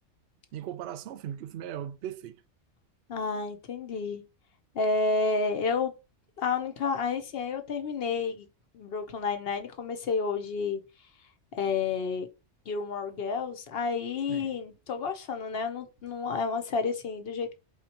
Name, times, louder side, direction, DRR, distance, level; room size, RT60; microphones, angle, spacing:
voice 1, 0.5-2.4 14.3-14.5, right 10 dB, 65° right, 0.8 m, -38 dB
voice 2, 3.1-4.2 4.7-5.9 6.4-8.5 8.7-10.8 11.6-12.3 12.7-17.6, left 4 dB, 60° left, 0.8 m, -30 dB
4.3 x 3.7 x 2.8 m
omnidirectional pair, 1.3 m